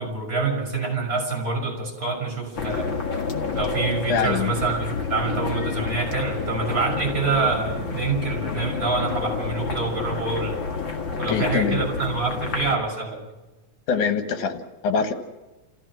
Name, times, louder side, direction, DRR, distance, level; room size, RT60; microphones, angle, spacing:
voice 1, 0.0-2.9 3.5-10.6 11.2-13.2, right 4 dB, 25° right, 1 dB, 6.7 m, -26 dB
sound 1, 2.6-12.8, left 5 dB, 40° left, 2.4 m, -29 dB
voice 2, 4.1-4.5 11.3-11.8 13.9-15.1, left 6 dB, 75° left, 7 dB, 3.0 m, -24 dB
28.0 x 15.5 x 6.3 m, 1.1 s
omnidirectional pair, 3.5 m